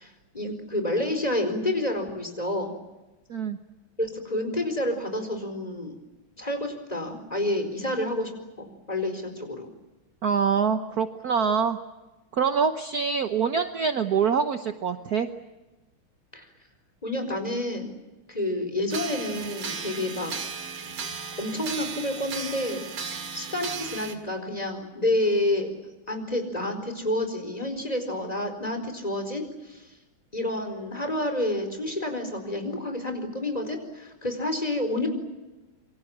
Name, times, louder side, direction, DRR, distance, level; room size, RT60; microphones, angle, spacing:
voice 1, 0.0-2.7 4.0-5.9 6.4-8.3 8.6-9.7 16.3-16.5 17.0-17.9 18.3-20.3 21.4-22.8 23.3-25.7 26.1-29.9 30.3-35.1, left 1 dB, 15° left, 6 dB, 4.6 m, -29 dB
voice 2, 10.2-11.8 12.3-15.3, right 6 dB, 50° right, 8 dB, 1.4 m, -25 dB
sound 1, 18.9-24.1, right 5 dB, 85° right, 3.1 m, -35 dB
27.5 x 24.0 x 7.3 m, 1.1 s
omnidirectional pair, 2.3 m